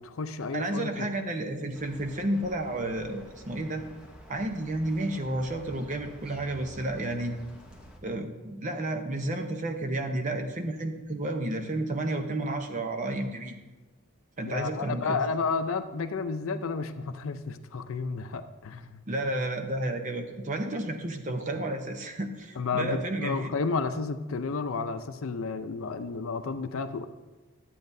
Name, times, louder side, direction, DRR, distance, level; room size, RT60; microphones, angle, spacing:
voice 1, 0.0-1.1 14.4-19.0 22.6-27.1, left 4 dB, 75° left, 9 dB, 0.5 m, -32 dB
voice 2, 0.5-3.8 4.3-7.4 8.0-13.6 14.4-15.2 19.1-23.5, right 1 dB, 35° right, 5 dB, 0.7 m, -31 dB
sound 1, 1.7-8.0, equal, 5° right, 0.9 m, -50 dB
12.5 x 8.4 x 2.7 m, 1.2 s
head